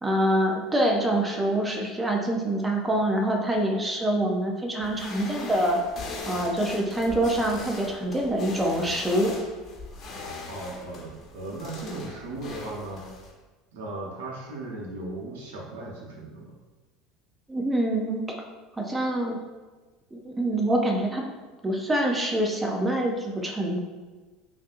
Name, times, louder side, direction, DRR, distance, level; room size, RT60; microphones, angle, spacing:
voice 1, 0.0-5.8 6.3-9.4 17.5-18.3 18.8-19.4 20.1-21.2 21.6-23.8, right 1 dB, 15° right, 1 dB, 0.7 m, -25 dB
sound 1, 4.8-13.3, left 3 dB, 45° left, 1.2 m, -40 dB
voice 2, 10.5-13.0 13.7-16.5, right 2 dB, 80° right, -2 dB, 1.0 m, -37 dB
5.1 x 2.8 x 2.6 m, 1.3 s
hypercardioid pair, 85°, 0 cm